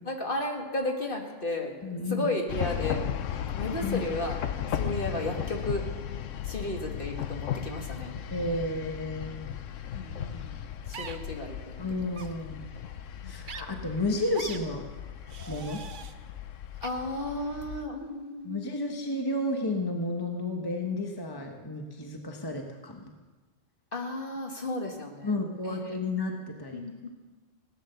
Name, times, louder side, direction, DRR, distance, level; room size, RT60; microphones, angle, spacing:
voice 1, 0.1-1.7 2.1-3.1 3.5-4.4 4.7-5.8 6.5-8.1 9.9-10.6 10.9-11.8 13.2-13.5 16.8-19.0 23.9-25.4 25.6-25.8 26.7-27.1, left 2 dB, 45° left, 1 dB, 2.0 m, -34 dB
voice 2, 1.8-2.3 3.8-4.1 8.3-9.5 11.8-12.7 13.2-14.9 15.5-15.8 18.4-23.1 25.2-27.1, left 2 dB, 20° left, 3 dB, 1.1 m, -32 dB
sound 1, 2.5-17.8, left 9 dB, 80° left, 1.1 m, -36 dB
sound 2, 10.9-11.2 12.1-12.3 13.5-13.6 14.3-14.6 15.3-16.1 16.8-16.9, right 6 dB, 45° right, 0.8 m, -41 dB
17.5 x 9.7 x 6.8 m, 1.3 s
omnidirectional pair, 1.3 m